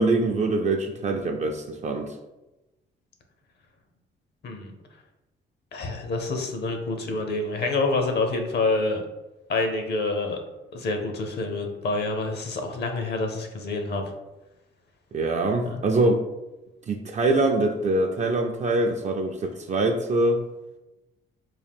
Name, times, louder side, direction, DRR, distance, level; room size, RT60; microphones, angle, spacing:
voice 1, 0.0-2.1 15.1-16.2 16.9-20.4, right 2 dB, 35° right, 4 dB, 0.4 m, -24 dB
voice 2, 5.7-9.0 9.5-10.4 10.7-14.1 15.7-15.8, left 3 dB, 55° left, 5 dB, 0.7 m, -27 dB
3.7 x 2.4 x 3.5 m, 0.99 s
cardioid pair, 90°, 20 cm